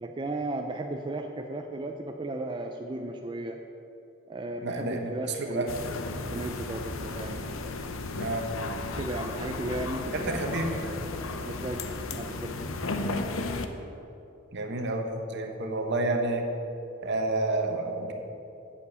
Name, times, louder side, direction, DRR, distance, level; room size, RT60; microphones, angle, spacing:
voice 1, 0.0-3.6 4.3-5.8 6.3-7.9 8.9-10.5 11.4-12.5, right 2 dB, 25° right, 3 dB, 0.4 m, -35 dB
voice 2, 4.6-5.1 5.4-5.7 8.1-8.5 10.1-10.8 14.5-15.1 15.3-16.4 17.0-18.1, right 2 dB, 55° right, 4 dB, 1.2 m, -29 dB
sound 1, 5.7-13.7, left 3 dB, 75° left, 0.7 m, -34 dB
8.4 x 7.0 x 8.1 m, 2.9 s
head